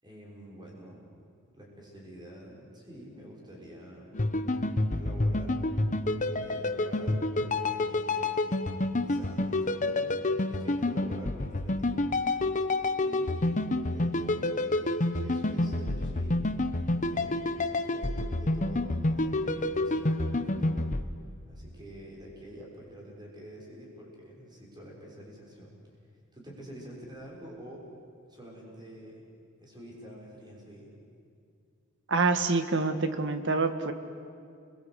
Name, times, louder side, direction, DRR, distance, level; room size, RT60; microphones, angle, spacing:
voice 1, 0.0-1.1 1.5-4.1 4.9-5.6 6.3-8.5 8.9-10.2 10.5-12.1 13.0-13.6 13.9-16.4 17.1-20.9 21.5-25.7 26.3-27.9 28.3-29.3 29.6-30.9, right 1 dB, 20° right, -3 dB, 6.3 m, -47 dB
sound 1, 4.1-21.0, left 2 dB, 35° left, 1.0 m, -29 dB
voice 2, 32.1-33.9, right 3 dB, 60° right, 9 dB, 1.6 m, -26 dB
30.0 x 22.0 x 8.3 m, 2.4 s
head